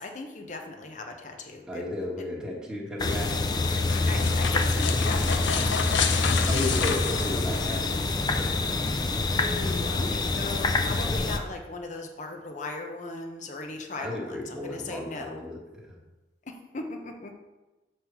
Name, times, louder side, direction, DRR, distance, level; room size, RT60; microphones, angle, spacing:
voice 1, 0.0-1.9 2.2-2.3 3.9-6.9 9.4-15.4 16.4-17.3, left 3 dB, 40° left, 4 dB, 0.8 m, -38 dB
voice 2, 1.7-3.4 6.3-8.6 14.0-16.0, left 1 dB, 5° right, -5 dB, 1.5 m, -34 dB
sound 1, 3.0-11.4, left 3 dB, 20° left, 0.4 m, -26 dB
sound 2, 3.3-8.1, left 6 dB, 80° left, 0.6 m, -30 dB
7.3 x 3.2 x 6.0 m, 1.1 s
head